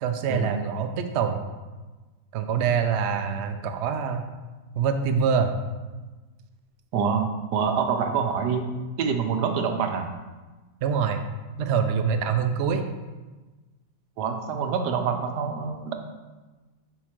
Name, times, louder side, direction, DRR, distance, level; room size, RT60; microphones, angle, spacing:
voice 1, 0.0-1.4 2.3-4.3 4.7-5.6 10.8-11.2 11.6-12.8, right 6 dB, 70° right, 6 dB, 0.6 m, -25 dB
voice 2, 6.9-8.7 9.0-10.1 14.2-15.9, right 6 dB, 85° right, 5 dB, 1.3 m, -26 dB
4.7 x 4.3 x 5.8 m, 1.2 s
omnidirectional pair, 1.7 m